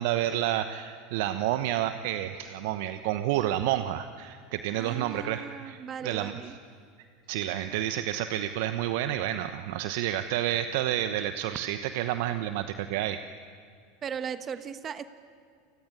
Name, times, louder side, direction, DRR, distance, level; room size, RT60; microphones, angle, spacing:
voice 1, 0.0-6.5 7.3-13.2, right 12 dB, 65° right, 10 dB, 1.0 m, -30 dB
voice 2, 4.8-6.5 14.0-15.1, right 7 dB, 35° right, 11 dB, 1.3 m, -37 dB
29.0 x 19.5 x 9.8 m, 2.2 s
hypercardioid pair, 85°, 0 cm